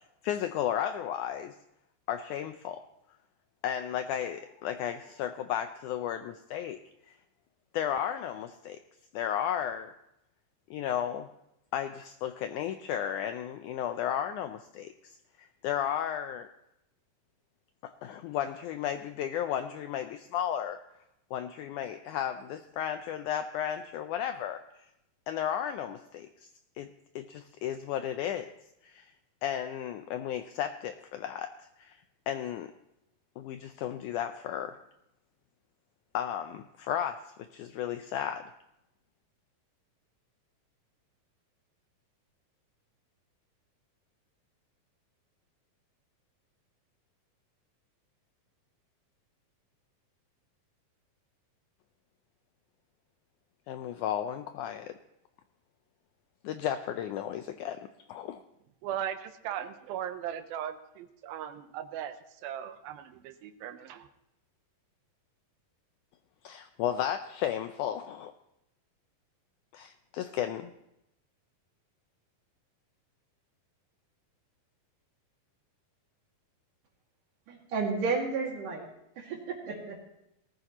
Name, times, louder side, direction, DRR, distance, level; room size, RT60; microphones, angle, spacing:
voice 1, 0.2-1.6 2.1-2.8 3.6-6.8 7.1-7.2 7.7-8.8 9.1-9.9 10.7-11.3 11.7-16.5 17.8-20.8 21.3-24.6 25.3-26.5 26.8-26.9 27.2-28.5 28.8-29.1 29.4-31.5 31.8-32.0 32.3-32.7 33.4-34.8 36.1-38.4 53.7-55.0 56.4-58.4 66.4-68.3 69.7-70.7, left 10 dB, 85° left, 8 dB, 1.8 m, -34 dB
voice 2, 58.8-62.2 62.4-64.1, right 10 dB, 90° right, 10 dB, 2.7 m, -38 dB
voice 3, 77.5-78.9 79.2-80.0, right 4 dB, 65° right, 0 dB, 3.8 m, -32 dB
19.5 x 14.0 x 3.0 m, 0.84 s
omnidirectional pair, 4.1 m